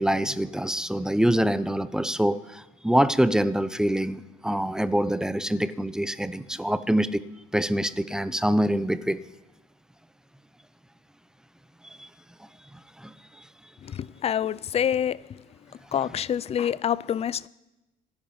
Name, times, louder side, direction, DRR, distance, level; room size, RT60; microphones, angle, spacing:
voice 1, 0.0-7.2 7.5-9.2 12.0-12.1 13.0-13.1, right 1 dB, 5° right, 0.7 m, -25 dB
voice 2, 13.8-15.4 15.9-17.5, left 9 dB, 40° left, 0.5 m, -27 dB
26.5 x 10.5 x 4.4 m
cardioid pair, 110°, 17 cm